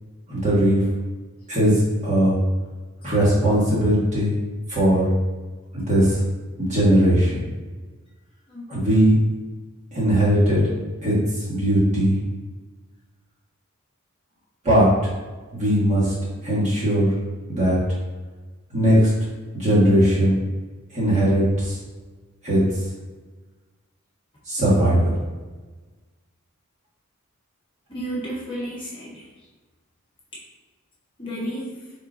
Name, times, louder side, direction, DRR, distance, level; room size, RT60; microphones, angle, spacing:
voice 1, 0.3-0.8 1.5-2.4 3.0-4.3 4.7-5.1 5.7-6.2 6.6-7.4 8.7-9.2 9.9-10.6 11.0-12.2 14.6-14.9 15.5-16.1 16.4-17.1 17.5-17.8 18.7-19.1 19.5-20.4 20.9-21.8 22.4-22.6 24.5-25.1, equal, 35° right, -7 dB, 1.5 m, -19 dB
voice 2, 27.9-29.5 31.2-31.9, right 1 dB, 25° left, -7 dB, 1.0 m, -32 dB
4.4 x 3.7 x 2.6 m, 1.3 s
head